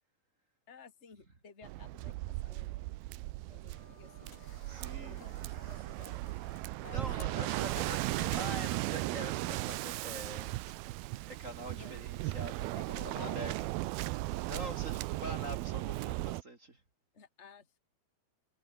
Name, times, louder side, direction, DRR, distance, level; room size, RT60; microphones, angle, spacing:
voice 1, 0.7-2.8 3.1-4.3 5.0-6.2 6.8-7.8 11.7-11.9 12.8-13.5 17.1-17.8, left 6 dB, 20° left, 2.9 m, -54 dB
Waves surf, 1.6-16.4, right 19 dB, 80° right, 2.5 m, -37 dB
sound 1, 3.7-9.2, left 5 dB, 85° left, 8.4 m, -57 dB
voice 2, 4.7-5.2 6.7-10.6 11.3-13.7 14.0-16.8, right 1 dB, 25° right, 2.3 m, -45 dB
omnidirectional pair, 4.4 m